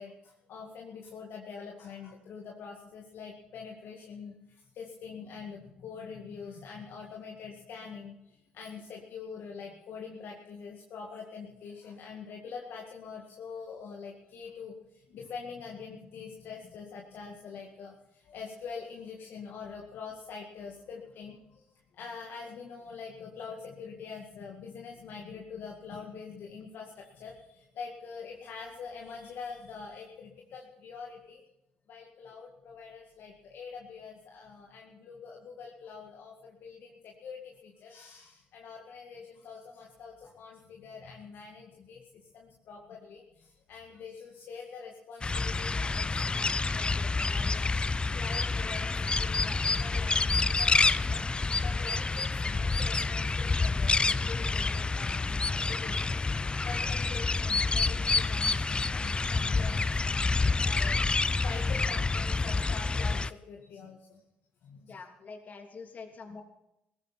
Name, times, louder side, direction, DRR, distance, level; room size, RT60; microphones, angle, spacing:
voice 1, 0.0-21.7 21.9-31.4 31.9-51.2 51.6-56.4 56.6-64.2 64.6-64.9, left 5 dB, 60° left, 0 dB, 2.1 m, -45 dB
sound 1, 45.2-63.3, left 3 dB, 25° left, 0.6 m, -28 dB
voice 2, 64.9-66.4, left 4 dB, 45° left, 3 dB, 3.2 m, -45 dB
18.0 x 14.5 x 4.4 m, 0.85 s
hypercardioid pair, 55°, 4 cm